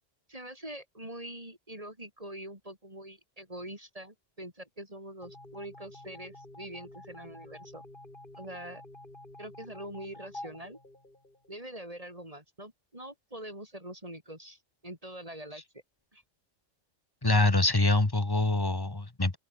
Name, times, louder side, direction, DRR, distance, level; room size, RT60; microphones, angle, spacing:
voice 1, 0.3-7.8 8.3-8.8 9.4-10.8 11.5-15.6 16.1-16.2, right 1 dB, 30° right, 6.3 m, -44 dB
sound 1, 5.2-11.7, left 1 dB, 40° left, 5.9 m, -49 dB
voice 2, 17.2-19.4, left 2 dB, 20° left, 1.5 m, -25 dB
open air
omnidirectional pair, 1.3 m